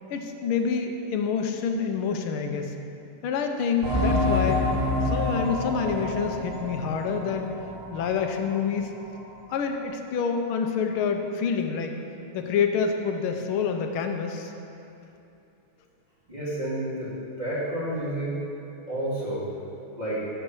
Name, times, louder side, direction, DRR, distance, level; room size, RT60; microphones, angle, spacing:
voice 1, 0.1-2.7 3.2-4.6 5.0-7.6 7.9-8.9 9.5-12.0 12.3-14.5, left 6 dB, 75° left, 5 dB, 1.6 m, -27 dB
sound 1, 3.8-8.1 8.4-8.5 9.1-9.2, left 1 dB, 70° right, 2.7 m, -27 dB
voice 2, 16.3-18.4 18.9-19.4 20.0-20.2, right 1 dB, 20° right, -10 dB, 2.4 m, -30 dB
11.5 x 5.4 x 6.3 m, 2.8 s
omnidirectional pair, 2.4 m